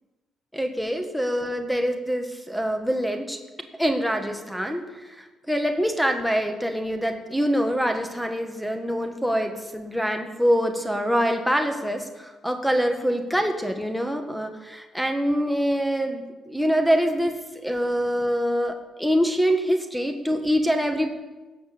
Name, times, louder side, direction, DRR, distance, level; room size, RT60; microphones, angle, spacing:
voice 1, 0.5-3.4 3.8-4.9 5.5-17.4 17.6-21.1, equal, ahead, 4 dB, 1.7 m, -25 dB
17.0 x 6.6 x 7.0 m, 1.2 s
cardioid pair, 90°, 0 cm